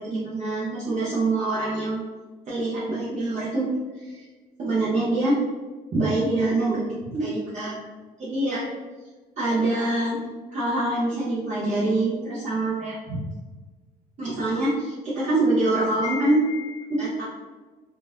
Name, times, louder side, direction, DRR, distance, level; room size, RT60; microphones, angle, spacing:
voice 1, 0.0-2.0 2.5-4.2 4.6-5.4 5.9-7.8 8.2-8.7 9.4-10.2 10.5-13.3 14.2-17.2, right 2 dB, 45° right, -8 dB, 1.0 m, -25 dB
3.6 x 2.5 x 3.1 m, 1.3 s
cardioid pair, 110°, 17 cm